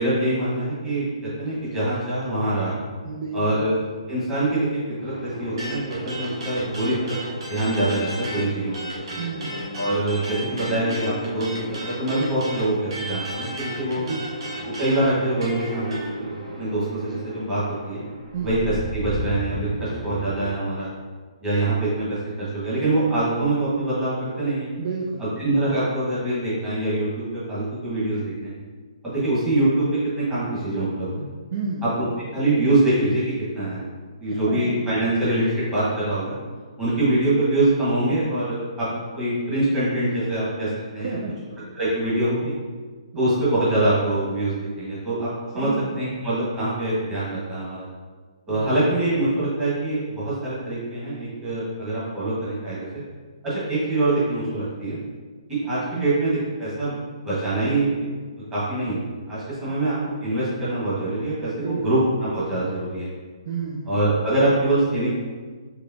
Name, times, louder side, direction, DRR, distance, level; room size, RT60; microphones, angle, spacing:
voice 1, 0.0-2.7 3.3-3.8 4.1-7.2 7.5-9.2 9.8-14.0 14.8-18.0 18.4-18.6 18.9-20.9 21.4-24.7 25.4-28.5 29.0-31.3 32.0-32.1 32.3-33.8 34.2-36.3 36.8-38.9 39.2-40.7 40.9-41.1 41.8-42.5 43.1-45.3 45.5-45.7 46.0-47.8 48.5-52.9 53.4-55.0 55.5-57.0 57.2-58.0 58.5-59.9 60.2-63.1 63.9-65.1, right 2 dB, 10° right, -11 dB, 1.5 m, -24 dB
voice 2, 3.0-3.6 9.2-9.6 14.0-14.3 18.3-18.5 24.8-25.2 31.5-32.1 34.3-34.8 41.0-41.5 43.1-43.5 45.5-45.9 48.5-48.9 55.9-56.1 61.6-62.0 63.4-63.9, right 4 dB, 40° right, -2 dB, 0.4 m, -31 dB
sound 1, 5.0-20.5, equal, 85° right, 1.3 m, -36 dB
sound 2, 5.6-8.4 8.7-16.1, right 1 dB, 55° right, 1.2 m, -34 dB
4.8 x 3.1 x 2.7 m, 1.5 s
hypercardioid pair, 170°, 3 cm